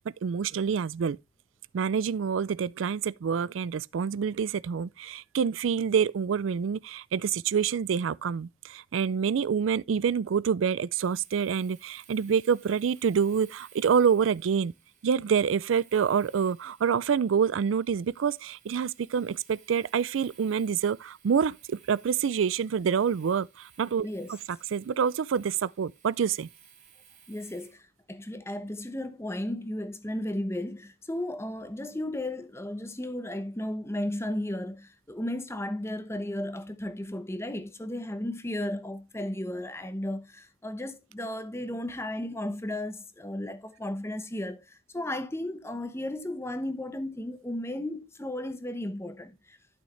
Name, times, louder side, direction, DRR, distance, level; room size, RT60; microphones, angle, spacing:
voice 1, 0.2-1.2 1.7-14.7 15.0-24.4 24.7-26.5, right 7 dB, 90° right, 0.4 m, -27 dB
Domestic sounds home sounds, 11.0-27.8, right 8 dB, 40° right, 2.3 m, -58 dB
voice 2, 24.0-24.3 27.3-49.6, left 1 dB, 15° left, 0.9 m, -34 dB
11.5 x 6.4 x 3.2 m
head